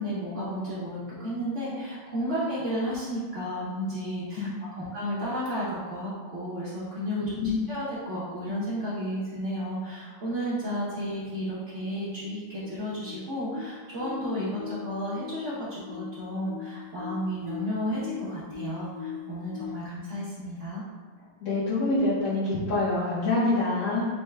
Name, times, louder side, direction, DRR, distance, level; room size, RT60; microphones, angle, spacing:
voice 1, 0.0-4.5 4.8-7.3 7.7-20.8, equal, 65° right, -9 dB, 0.7 m, -32 dB
sound 1, 11.6-19.7, left 9 dB, 85° left, 1.7 m, -41 dB
voice 2, 21.4-24.1, left 2 dB, 65° left, -11 dB, 0.8 m, -26 dB
4.3 x 2.2 x 3.2 m, 1.4 s
omnidirectional pair, 2.4 m